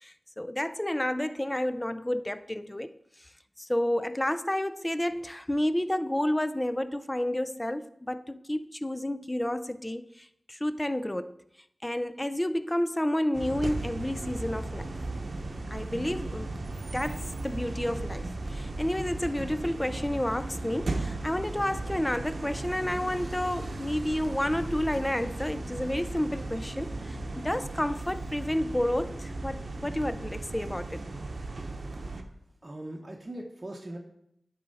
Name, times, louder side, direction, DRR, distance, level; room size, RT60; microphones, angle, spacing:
voice 1, 0.0-2.9 3.2-3.3 3.6-11.3 11.8-14.9 15.7-16.5 16.9-31.0, left 1 dB, 15° left, 0.4 m, -30 dB
sound 1, 13.3-32.2, right 2 dB, 65° right, 0.8 m, -36 dB
voice 2, 32.6-34.0, right 1 dB, 35° right, 0.8 m, -40 dB
10.0 x 4.2 x 4.1 m
wide cardioid pair, 55°, 0 cm